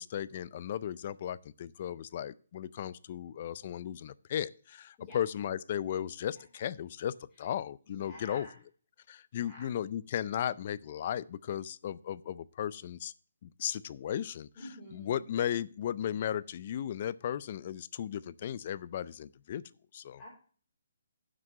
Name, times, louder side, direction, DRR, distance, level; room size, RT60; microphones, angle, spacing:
voice 1, 0.0-8.5 9.1-13.1 13.4-14.5 14.9-19.6 19.9-20.2, left 10 dB, 35° left, 18 dB, 0.4 m, -36 dB
voice 2, 7.9-8.5 9.3-9.7 14.6-15.2 20.2-20.3, left 1 dB, 15° left, -5 dB, 3.6 m, -49 dB
7.6 x 6.1 x 6.4 m, 0.41 s
hypercardioid pair, 165°, 0 cm